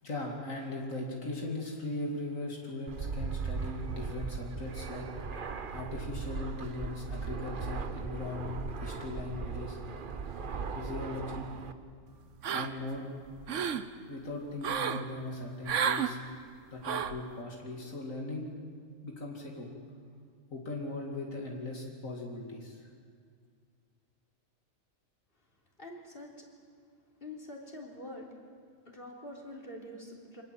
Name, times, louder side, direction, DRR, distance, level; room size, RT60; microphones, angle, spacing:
voice 1, 0.0-5.1 5.4-9.8 10.7-11.5 12.5-13.0 14.1-16.2 16.7-18.5 19.0-19.7 20.5-22.9, left 2 dB, 80° left, -1 dB, 2.9 m, -39 dB
Fixed-wing aircraft airplane, 2.9-11.7, right 5 dB, 45° right, 1.0 m, -38 dB
sound 1, 12.4-13.0 13.3-13.9 14.6-15.0 15.7-16.1 16.8-17.2, right 8 dB, 70° right, 1.2 m, -31 dB
voice 2, 25.8-26.3 27.2-28.3 28.9-30.4, left 1 dB, 45° left, -1 dB, 3.6 m, -45 dB
26.0 x 19.5 x 7.9 m, 2.1 s
omnidirectional pair, 1.4 m